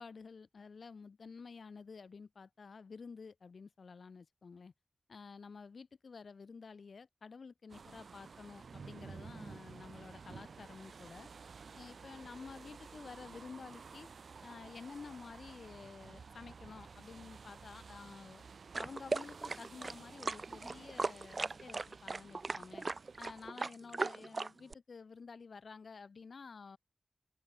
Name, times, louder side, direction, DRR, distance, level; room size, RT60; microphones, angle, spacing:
voice 1, 0.0-4.7 5.1-11.3 11.7-14.1 14.4-18.4 18.8-22.8 23.2-26.8, left 5 dB, 80° left, 2.3 m, -51 dB
sound 1, 7.7-23.5, right 5 dB, 85° right, 6.3 m, -53 dB
sound 2, 18.7-24.7, right 3 dB, 60° right, 2.2 m, -38 dB
cardioid pair, 40°, 0 cm